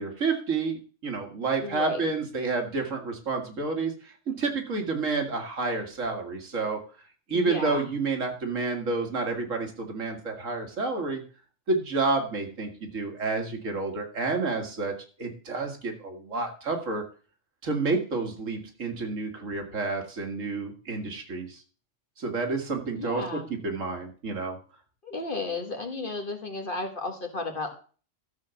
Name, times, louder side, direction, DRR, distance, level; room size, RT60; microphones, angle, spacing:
voice 1, 0.0-6.8 7.3-11.2 11.7-14.9 15.2-17.0 17.6-21.6 22.2-24.6, right 3 dB, 75° right, 3 dB, 2.2 m, -29 dB
voice 2, 1.6-2.0 7.3-7.9 23.0-23.5 25.0-27.7, left 3 dB, 40° left, 4 dB, 1.7 m, -33 dB
13.0 x 4.5 x 6.9 m, 0.39 s
omnidirectional pair, 1.4 m